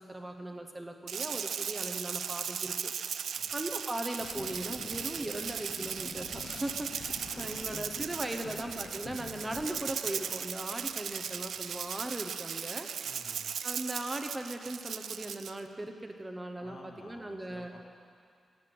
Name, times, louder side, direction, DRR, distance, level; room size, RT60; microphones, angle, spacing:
voice 1, 0.1-2.9 3.5-12.9 13.6-17.7, right 1 dB, 15° right, 5 dB, 0.8 m, -38 dB
Rattle (instrument), 1.1-15.6, right 7 dB, 80° right, 0.3 m, -37 dB
voice 2, 3.2-3.6 8.3-8.5 13.0-13.5 16.6-17.8, left 2 dB, 70° left, -2 dB, 2.5 m, -53 dB
sound 1, 4.2-12.2, left 4 dB, 50° left, 0.9 m, -48 dB
12.5 x 9.6 x 7.7 m, 2.3 s
wide cardioid pair, 125°, 0 cm